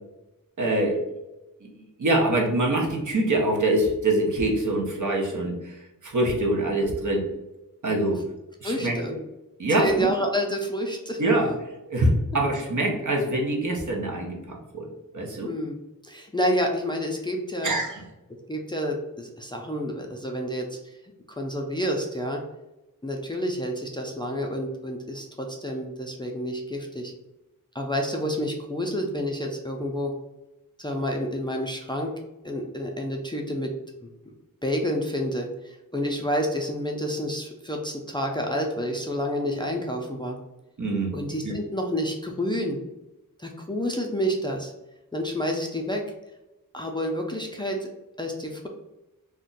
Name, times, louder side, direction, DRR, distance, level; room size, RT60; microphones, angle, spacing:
voice 1, 0.6-1.0 2.0-7.2 7.8-8.2 8.6-8.9 9.6-10.1 11.2-14.9 15.1-15.5 17.6-18.0 40.8-41.2 41.4-41.5, right 1 dB, 60° right, 1 dB, 0.8 m, -24 dB
voice 2, 8.6-9.2 9.7-11.2 15.4-17.7 18.5-21.0 21.3-22.4 23.0-27.1 27.7-30.1 30.8-32.1 32.4-33.7 34.6-40.4 41.1-42.8 43.4-44.7 45.1-46.0 46.7-47.9 48.2-48.7, equal, 15° left, 1 dB, 0.4 m, -29 dB
2.5 x 2.2 x 3.8 m, 0.96 s
wide cardioid pair, 80°, 34 cm